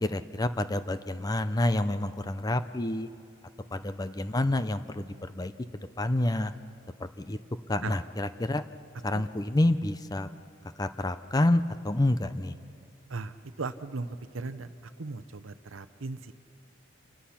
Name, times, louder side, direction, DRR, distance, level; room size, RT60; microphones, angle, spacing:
voice 1, 0.0-3.1 3.7-5.5 6.0-6.5 7.0-7.4 7.7-8.6 9.0-10.3 10.8-12.5, left 1 dB, 20° left, 12 dB, 0.5 m, -28 dB
voice 2, 13.1-14.7 15.0-16.3, right 3 dB, 80° right, 12 dB, 0.8 m, -37 dB
27.5 x 21.5 x 5.8 m, 2.7 s
head